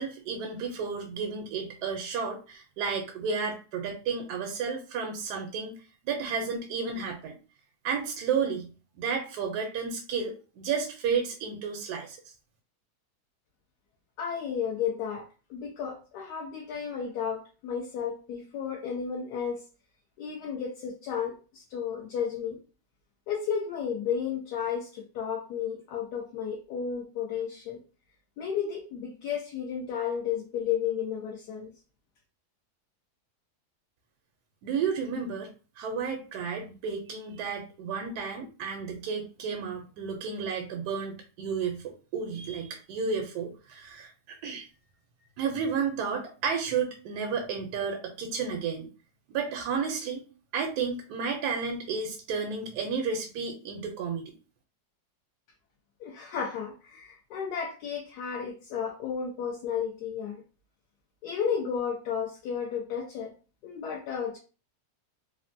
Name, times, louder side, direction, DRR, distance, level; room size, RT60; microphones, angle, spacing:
voice 1, 0.0-5.7 6.0-7.3 7.8-8.7 9.0-12.2 34.6-35.5 35.8-44.7 45.4-48.9 49.3-50.2 50.5-54.3, right 5 dB, 75° right, 3 dB, 1.1 m, -32 dB
voice 2, 14.2-15.2 15.5-19.6 20.2-22.6 23.3-27.8 28.4-31.7 56.0-60.4 61.2-63.3 63.6-64.4, left 7 dB, 80° left, 0 dB, 1.2 m, -33 dB
3.4 x 2.1 x 2.5 m, 0.35 s
omnidirectional pair, 1.8 m